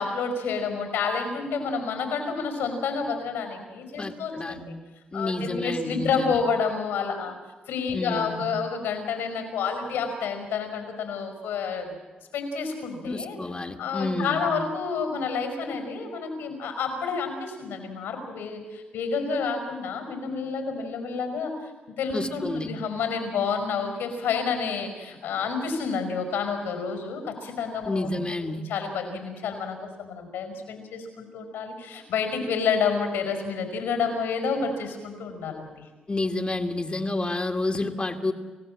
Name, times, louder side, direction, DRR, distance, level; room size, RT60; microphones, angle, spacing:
voice 1, 0.0-4.8 5.1-7.3 7.7-11.9 12.3-13.4 13.8-21.5 22.0-28.1 28.7-35.9, left 5 dB, 85° left, 6 dB, 5.2 m, -29 dB
voice 2, 4.0-4.6 5.1-6.4 7.9-8.4 13.1-14.5 22.1-22.7 27.9-28.6 36.1-38.3, left 2 dB, 30° left, 3 dB, 2.1 m, -29 dB
29.5 x 16.0 x 7.6 m, 1.3 s
supercardioid pair, 50°, 3 cm